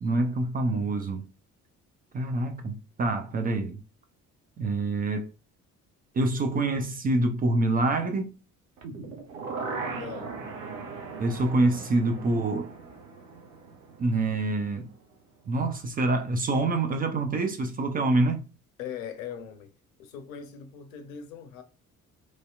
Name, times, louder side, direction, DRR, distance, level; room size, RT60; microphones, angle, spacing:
voice 1, 0.0-1.3 2.1-3.8 4.6-5.3 6.1-8.4 11.2-12.7 14.0-14.9 15.5-18.4, right 2 dB, 20° right, 0.4 m, -26 dB
sound 1, 8.8-14.8 15.1-15.2, right 4 dB, 75° right, 0.7 m, -39 dB
voice 2, 9.9-10.3 11.0-11.4 18.8-19.7 20.0-21.6, left 8 dB, 65° left, 0.6 m, -40 dB
3.0 x 2.7 x 2.2 m
figure-of-eight pair, 45°, 42 cm